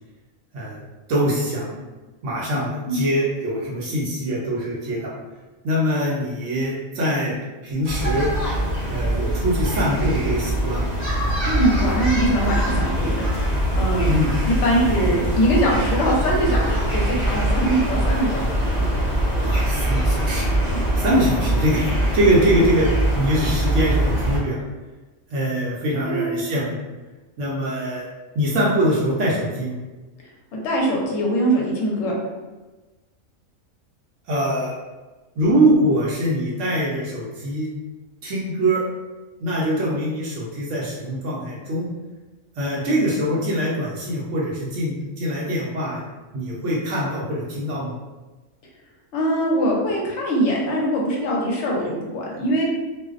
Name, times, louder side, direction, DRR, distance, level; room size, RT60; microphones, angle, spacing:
voice 1, 1.1-1.8 2.2-5.1 5.6-7.3 7.6-8.3 8.9-10.9 14.0-14.4 14.8-15.1 19.4-20.5 21.0-21.9 22.1-22.9 23.2-24.6 25.3-26.8 27.4-28.1 28.3-29.7 34.3-34.7 35.4-37.7 38.2-38.8 39.4-41.9 42.6-46.0 46.3-47.9, equal, 70° right, -5 dB, 0.9 m, -23 dB
sound 1, 7.8-24.4, right 1 dB, 10° left, 0.8 m, -23 dB
voice 2, 11.4-13.3 13.7-14.1 14.5-18.9 20.7-20.8 26.0-26.4 30.5-32.1 49.1-52.6, right 1 dB, 65° left, -2 dB, 0.9 m, -22 dB
2.5 x 2.0 x 2.4 m, 1.2 s
omnidirectional pair, 1.4 m